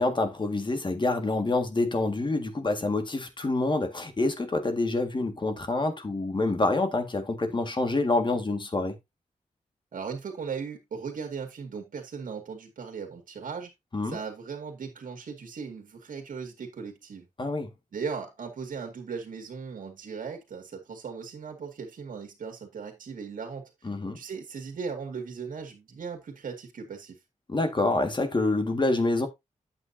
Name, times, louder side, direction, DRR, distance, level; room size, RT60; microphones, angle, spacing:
voice 1, 0.0-9.0 13.9-14.2 17.4-17.7 23.8-24.2 27.5-29.3, left 2 dB, 35° left, 1.9 m, -27 dB
voice 2, 9.9-13.7 14.0-17.3 17.9-23.7 24.1-27.2, right 5 dB, 85° right, 2.1 m, -38 dB
8.9 x 7.7 x 2.7 m
wide cardioid pair, 85°, 14 cm